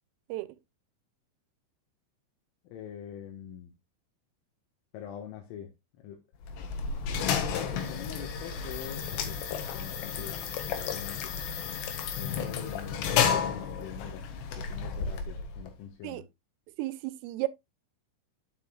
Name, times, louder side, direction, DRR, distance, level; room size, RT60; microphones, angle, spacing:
voice 1, 2.7-3.7 4.9-6.2 7.5-9.4 9.7-11.3 12.2-14.3 14.6-16.2, left 9 dB, 85° left, 4.0 m, -44 dB
sound 1, 6.4-15.7, left 7 dB, 70° left, 3.4 m, -32 dB
voice 2, 16.8-17.5, right 18 dB, 90° right, 3.3 m, -33 dB
9.5 x 8.3 x 2.3 m
omnidirectional pair, 5.7 m